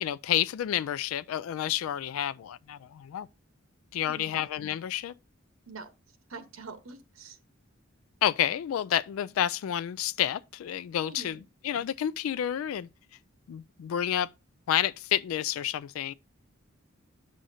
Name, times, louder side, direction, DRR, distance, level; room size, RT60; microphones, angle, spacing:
voice 1, 0.0-3.3 3.9-5.1 8.2-11.4 11.6-12.9 13.5-14.3 14.7-16.1, left 10 dB, 85° left, 0.3 m, -29 dB
voice 2, 4.0-4.4 5.7-7.4 11.0-11.4, right 4 dB, 85° right, 1.0 m, -45 dB
9.8 x 6.3 x 2.7 m
head